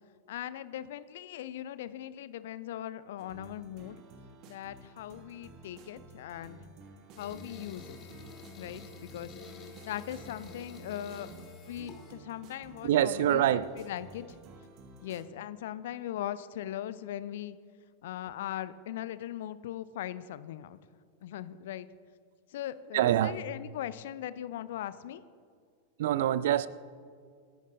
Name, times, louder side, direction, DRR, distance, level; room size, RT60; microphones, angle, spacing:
voice 1, 0.3-4.0 4.5-6.6 7.2-8.1 8.6-9.3 9.8-11.3 11.7-14.4 15.0-17.6 18.0-20.8 21.2-21.9 22.5-25.2, left 12 dB, 55° left, 15 dB, 0.6 m, -39 dB
sound 1, 3.2-15.2, right 3 dB, 40° right, 1.2 m, -53 dB
sound 2, 7.2-12.1, left 3 dB, 30° left, 2.3 m, -48 dB
voice 2, 12.8-13.7 22.9-23.4 26.0-26.7, right 12 dB, 55° right, 19 dB, 0.5 m, -25 dB
26.5 x 10.5 x 2.6 m, 2.1 s
figure-of-eight pair, 90°, 0 cm